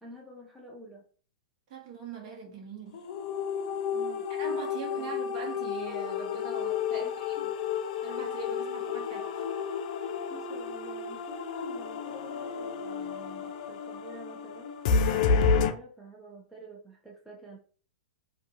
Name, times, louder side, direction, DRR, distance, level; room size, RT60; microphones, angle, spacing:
voice 1, 0.0-1.1 3.9-4.3 4.9-5.1 7.0-7.5 10.3-14.7 15.0-17.6, right 1 dB, 5° right, 0.8 m, -48 dB
voice 2, 1.7-3.0 4.3-7.5 8.0-9.5, right 4 dB, 50° right, 1.1 m, -41 dB
sound 1, 2.9-15.7, left 6 dB, 55° left, 0.4 m, -31 dB
2.6 x 2.5 x 2.5 m
hypercardioid pair, 115°, 5 cm